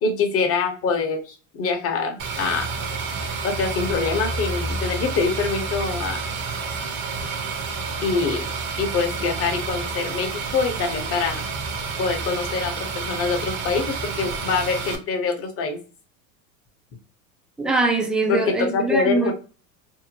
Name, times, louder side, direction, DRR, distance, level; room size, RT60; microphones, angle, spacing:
voice 1, 0.0-2.7 3.4-6.2 8.0-8.5 8.8-11.5 12.0-15.8 18.3-18.4 18.7-19.3, left 4 dB, 35° left, 4 dB, 0.8 m, -25 dB
sound 1, 2.2-15.0, right 4 dB, 40° right, 0.7 m, -29 dB
voice 2, 17.6-19.3, right 3 dB, ahead, 1 dB, 0.3 m, -22 dB
2.7 x 2.1 x 2.9 m, 0.36 s
supercardioid pair, 105°, 41 cm